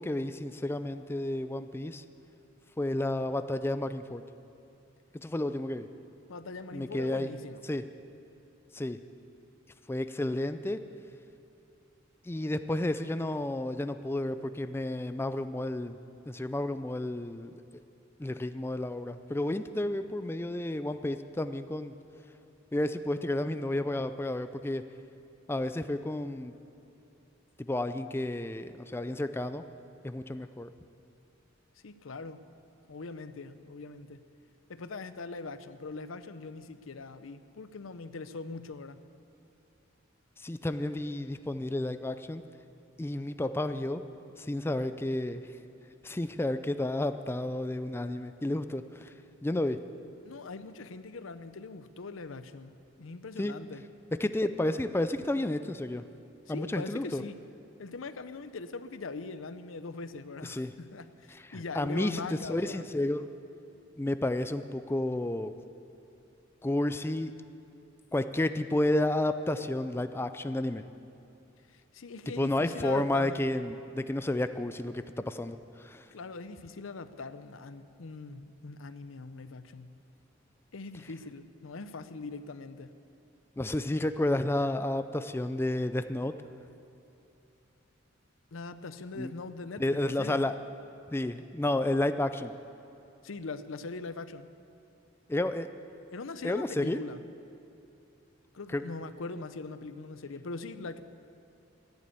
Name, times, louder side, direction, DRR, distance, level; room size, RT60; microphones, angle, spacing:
voice 1, 0.0-2.0 2.8-4.2 5.1-5.9 6.7-7.3 7.6-7.8 8.7-9.0 9.9-10.8 12.2-16.0 16.3-17.5 18.2-21.9 22.7-24.8 25.5-26.5 27.6-29.6 30.0-30.7 40.4-42.4 43.0-44.0 44.4-45.4 46.0-49.1 49.4-49.8 53.4-53.5 54.2-56.1 56.5-57.2 60.4-60.7 61.3-63.3 64.0-65.5 66.6-67.3 68.1-70.8 72.4-76.1 83.6-86.4 89.2-89.3 89.8-90.5 91.1-92.5 95.3-95.7 96.4-97.0 98.7-98.8, left 1 dB, 10° left, 10 dB, 0.4 m, -31 dB
voice 2, 6.3-7.6 31.8-32.4 32.9-34.2 34.7-39.0 50.2-53.8 56.5-57.4 57.8-62.9 71.7-73.4 76.1-80.0 80.7-82.9 88.5-90.4 93.2-94.5 96.1-97.2 98.5-101.0, left 3 dB, 90° left, 12 dB, 0.7 m, -41 dB
13.5 x 10.5 x 8.4 m, 2.7 s
head